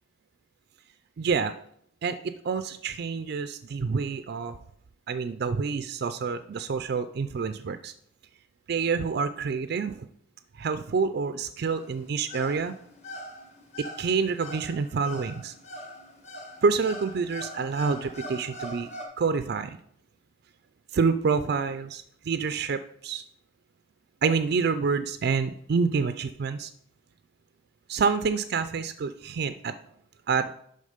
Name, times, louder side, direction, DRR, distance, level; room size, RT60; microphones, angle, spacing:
voice 1, 1.2-1.5 2.0-4.6 5.1-7.9 8.7-10.1 10.5-12.7 13.8-15.5 16.6-18.9 19.2-19.8 20.9-23.2 24.2-26.7 27.9-29.7 30.3-30.5, right 5 dB, 55° right, 11 dB, 0.4 m, -27 dB
sound 1, 11.7-19.0, left 1 dB, 35° left, 1.5 m, -42 dB
11.0 x 3.8 x 5.0 m, 0.69 s
head